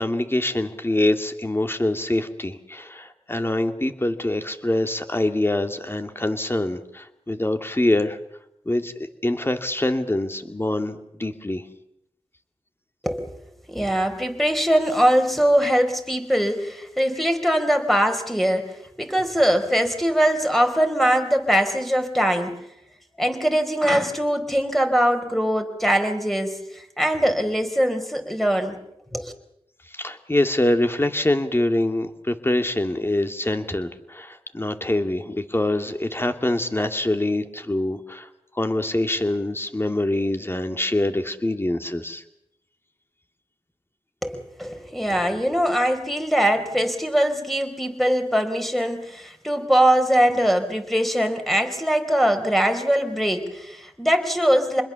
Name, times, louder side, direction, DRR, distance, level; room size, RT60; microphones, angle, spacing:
voice 1, 0.0-8.2 8.7-11.6 29.9-38.3 38.5-42.2, left 1 dB, 20° left, 7 dB, 2.4 m, -24 dB
voice 2, 13.0-13.4 13.7-22.6 23.2-28.8 29.1-29.3 44.2-54.8, equal, ahead, 5 dB, 4.4 m, -22 dB
27.0 x 21.0 x 7.1 m, 0.79 s
cardioid pair, 50°, 10 cm